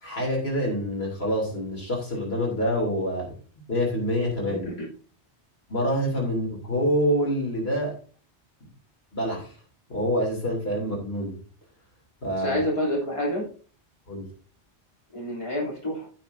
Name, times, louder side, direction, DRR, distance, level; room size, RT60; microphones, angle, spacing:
voice 1, 0.0-3.3 3.7-4.7 5.7-7.9 9.1-9.5 9.9-11.4 12.2-12.6 14.1-14.3, equal, 60° left, -2 dB, 3.2 m, -26 dB
voice 2, 4.5-4.9 12.4-13.5 15.1-16.1, left 1 dB, 25° left, -5 dB, 3.1 m, -28 dB
15.0 x 6.0 x 2.7 m, 0.39 s
omnidirectional pair, 1.2 m